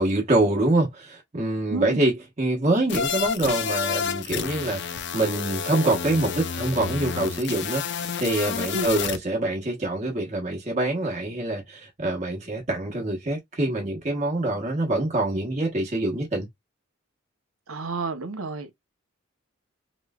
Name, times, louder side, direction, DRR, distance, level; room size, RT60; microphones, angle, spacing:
voice 1, 0.0-16.5, right 2 dB, 35° right, 1.0 m, -25 dB
voice 2, 1.7-2.0 8.7-8.9 17.7-18.7, right 3 dB, 80° right, 0.8 m, -30 dB
sound 1, 2.9-9.2, left 7 dB, 55° left, 0.4 m, -30 dB
3.2 x 3.0 x 2.3 m
head